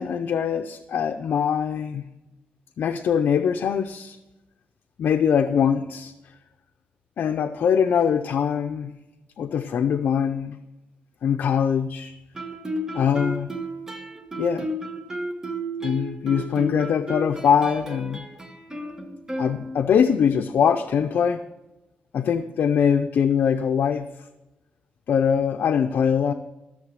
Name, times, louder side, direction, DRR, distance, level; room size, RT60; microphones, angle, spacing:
voice 1, 0.0-2.0 2.8-4.2 5.0-6.1 7.2-8.9 9.4-10.6 11.2-12.1 12.9-13.5 14.4-14.7 15.8-18.2 19.4-21.4 22.1-24.0 25.1-26.3, left 7 dB, 80° left, 6 dB, 0.6 m, -22 dB
Guitar, 12.3-20.1, right 1 dB, 15° right, 1.5 m, -33 dB
14.0 x 6.8 x 6.5 m, 0.98 s
wide cardioid pair, 130°, 4 cm